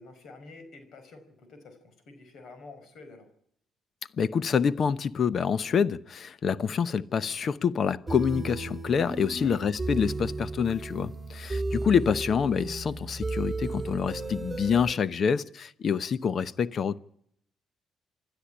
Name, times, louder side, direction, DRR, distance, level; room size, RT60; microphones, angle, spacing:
voice 1, 0.0-3.3 9.3-9.8, left 3 dB, 70° left, 4.9 m, -49 dB
voice 2, 4.2-17.0, left 6 dB, 50° left, 0.9 m, -27 dB
sound 1, 8.1-14.9, right 3 dB, 10° right, 3.1 m, -34 dB
27.5 x 12.0 x 9.9 m
cardioid pair, 90°, 0 cm